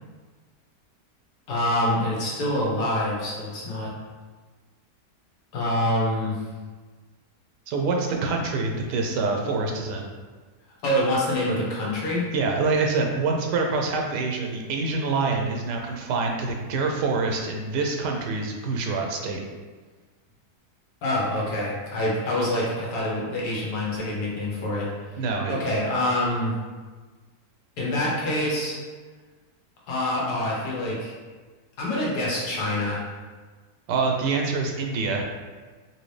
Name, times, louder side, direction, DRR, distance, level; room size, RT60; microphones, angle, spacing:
voice 1, 1.5-3.9 5.5-6.4 10.8-12.3 21.0-24.9 25.5-26.6 27.8-28.8 29.9-31.1 31.8-33.0, left 1 dB, 75° left, -4 dB, 1.5 m, -26 dB
voice 2, 7.7-10.1 12.3-19.4 25.2-25.5 33.9-35.2, right 4 dB, 85° right, 1 dB, 1.2 m, -26 dB
4.1 x 2.7 x 3.2 m, 1.4 s
omnidirectional pair, 1.8 m